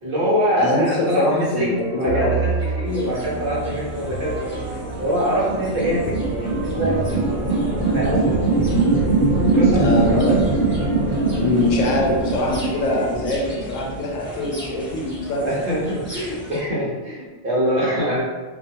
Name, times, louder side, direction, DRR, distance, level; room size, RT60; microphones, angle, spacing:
voice 1, 0.0-4.7 5.0-7.3 7.5-7.6 7.9-8.4 9.3-10.3 15.4-18.2, equal, 55° right, -6 dB, 0.8 m, -24 dB
voice 2, 0.6-2.4 8.3-8.9 9.5-10.4 11.4-15.6, left 1 dB, 80° left, -2 dB, 1.0 m, -23 dB
sound 1, 1.5-13.2, right 4 dB, 80° right, 1.0 m, -32 dB
sound 2, 2.8-16.6, equal, 10° left, 0.9 m, -37 dB
sound 3, 4.4-14.1, right 3 dB, 55° left, 1.0 m, -22 dB
2.5 x 2.3 x 2.7 m, 1.3 s
omnidirectional pair, 1.3 m